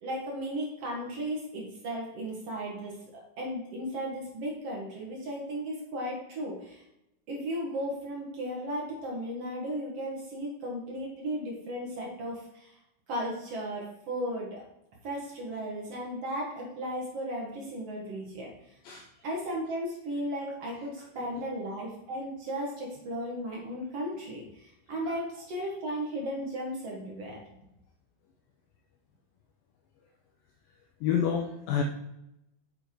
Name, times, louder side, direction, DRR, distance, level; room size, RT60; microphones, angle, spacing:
voice 1, 0.0-6.8 7.3-12.7 13.1-14.6 15.0-18.5 19.2-27.4, equal, 50° right, -2 dB, 1.9 m, -35 dB
voice 2, 31.0-31.8, left 8 dB, 80° left, 2 dB, 2.2 m, -28 dB
7.4 x 6.5 x 4.5 m, 0.85 s
omnidirectional pair, 4.8 m